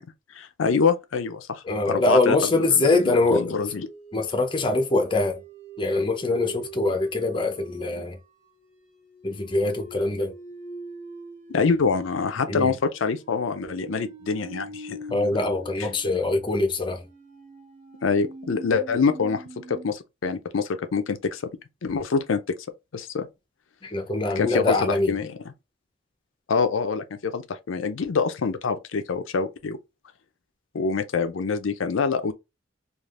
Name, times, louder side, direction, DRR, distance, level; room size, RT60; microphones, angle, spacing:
voice 1, 0.3-2.9 3.3-3.9 11.5-15.2 18.0-21.4 21.8-22.4 22.9-23.3 24.4-24.7 25.1-25.3 26.5-29.8 30.7-32.3, left 5 dB, 80° left, 0.5 m, -25 dB
voice 2, 1.6-3.5 4.1-5.4 5.8-8.2 9.2-10.3 12.5-12.8 15.1-17.0 23.8-25.1, left 2 dB, 25° left, 0.6 m, -23 dB
sound 1, 2.0-19.9, right 2 dB, 45° right, 1.2 m, -44 dB
3.3 x 2.4 x 2.4 m
head